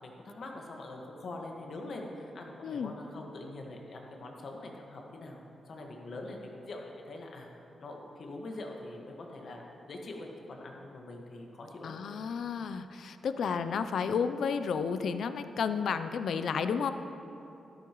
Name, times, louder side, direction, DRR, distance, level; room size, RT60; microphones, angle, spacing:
voice 1, 0.0-7.5 7.8-11.9, left 2 dB, 60° left, 1 dB, 1.5 m, -44 dB
voice 2, 2.6-2.9 11.8-16.9, left 6 dB, 75° left, 10 dB, 0.4 m, -32 dB
13.0 x 12.0 x 3.1 m, 2.8 s
cardioid pair, 110°, 0 cm